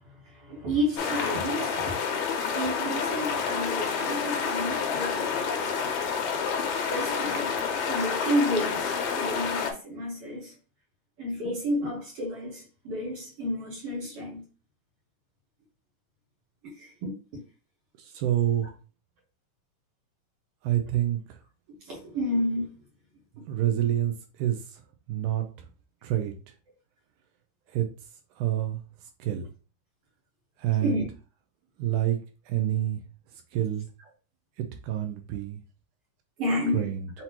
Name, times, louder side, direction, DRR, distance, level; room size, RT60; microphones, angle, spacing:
voice 1, 0.4-2.0 2.5-5.7 6.9-7.5 7.9-10.5 11.2-14.4 16.8-17.1 21.9-22.7 30.8-31.0 36.4-36.9, equal, 55° right, 1.8 m, -31 dB
sound 1, 1.0-9.7, left 6 dB, 75° left, 1.9 m, -29 dB
voice 2, 18.0-18.7 20.6-21.4 23.5-24.8 25.1-25.7 26.0-26.3 27.7-27.9 28.4-29.5 30.6-31.1 31.8-32.2 32.5-33.0 33.3-33.9 34.6-35.6 36.7-37.1, right 12 dB, 80° right, 1.9 m, -28 dB
5.9 x 2.7 x 2.8 m
omnidirectional pair, 3.8 m